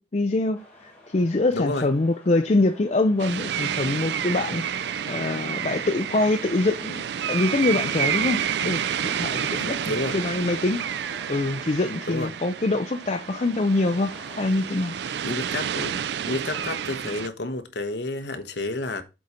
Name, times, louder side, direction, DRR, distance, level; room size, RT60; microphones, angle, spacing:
voice 1, 0.0-4.6 5.1-9.8 10.1-10.8 11.3-15.0, left 2 dB, 35° left, 0.5 m, -24 dB
sound 1, 0.5-14.5, left 1 dB, 10° left, 3.2 m, -50 dB
voice 2, 1.5-1.9 9.6-10.2 12.1-12.3 15.2-16.0 16.3-19.0, left 2 dB, 65° left, 1.1 m, -30 dB
sound 2, 3.2-17.3, right 8 dB, 65° right, 0.4 m, -30 dB
7.7 x 4.3 x 5.1 m
head